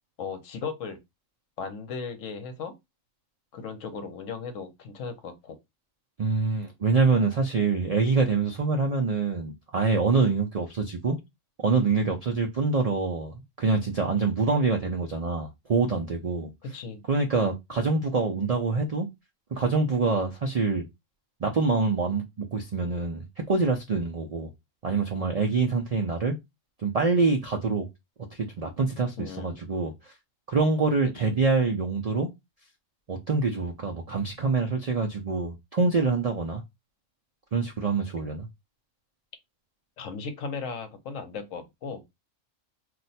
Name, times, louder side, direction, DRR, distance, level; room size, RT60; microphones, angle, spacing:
voice 1, 0.2-1.0 1.6-2.7 3.5-5.6 16.6-17.0 29.2-29.6 31.2-31.4 40.0-42.0, left 5 dB, 75° left, 1.1 m, -36 dB
voice 2, 6.2-11.2 11.6-16.5 17.1-19.1 19.5-20.9 21.4-24.5 24.8-26.3 26.8-27.9 28.3-29.9 30.5-32.3 33.1-36.6 37.5-38.5, right 4 dB, 75° right, 0.3 m, -25 dB
2.6 x 2.1 x 4.0 m
omnidirectional pair, 1.4 m